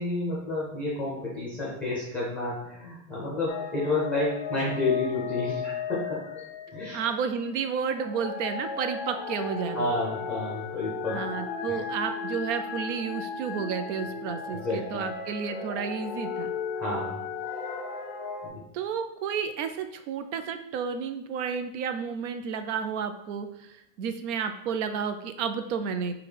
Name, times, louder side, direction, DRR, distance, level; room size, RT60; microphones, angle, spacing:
voice 1, 0.0-6.2 6.7-7.0 9.7-11.2 14.6-15.1 16.7-17.2 18.4-18.6, left 2 dB, 5° left, -7 dB, 0.7 m, -30 dB
sound 1, 3.5-7.2 7.9-18.5, left 5 dB, 40° left, 0.6 m, -35 dB
voice 2, 6.9-9.9 11.1-16.5 18.7-26.1, right 6 dB, 65° right, 8 dB, 0.5 m, -31 dB
5.2 x 2.3 x 3.3 m, 0.82 s
supercardioid pair, 170°, 39 cm